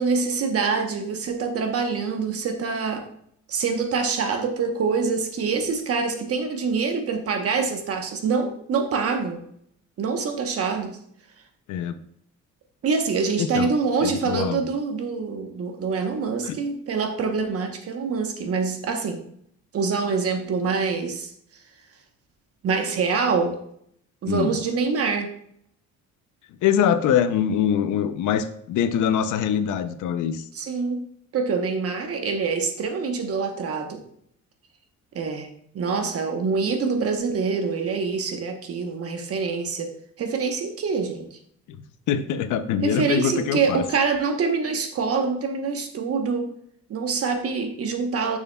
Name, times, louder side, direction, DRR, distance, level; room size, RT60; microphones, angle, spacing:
voice 1, 0.0-3.1 3.5-9.4 10.0-11.0 12.8-19.2 19.7-21.3 22.6-23.6 24.2-25.3 30.5-31.0 31.3-34.0 35.1-35.5 35.7-39.9 40.2-41.4 42.8-46.5 46.9-48.4, right 5 dB, 50° right, 5 dB, 1.0 m, -25 dB
voice 2, 13.4-13.7 14.0-14.6 16.4-16.6 24.2-24.6 26.6-30.4 41.7-43.8, left 8 dB, 75° left, 12 dB, 0.6 m, -24 dB
6.8 x 6.4 x 2.3 m, 0.68 s
cardioid pair, 120°, 30 cm